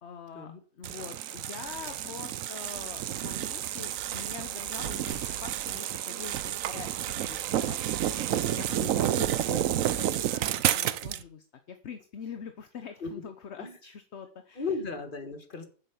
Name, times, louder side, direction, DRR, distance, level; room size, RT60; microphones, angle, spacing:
voice 1, 0.0-5.1 5.4-7.8 8.3-14.8, left 7 dB, 50° left, 8 dB, 1.0 m, -44 dB
sound 1, 0.8-11.2, right 11 dB, 65° right, 0.9 m, -30 dB
sound 2, 5.1-7.0, left 3 dB, 70° left, 2.9 m, -52 dB
voice 2, 14.6-15.7, left 4 dB, 30° left, 8 dB, 1.6 m, -35 dB
9.5 x 7.3 x 7.1 m, 0.42 s
omnidirectional pair, 1.8 m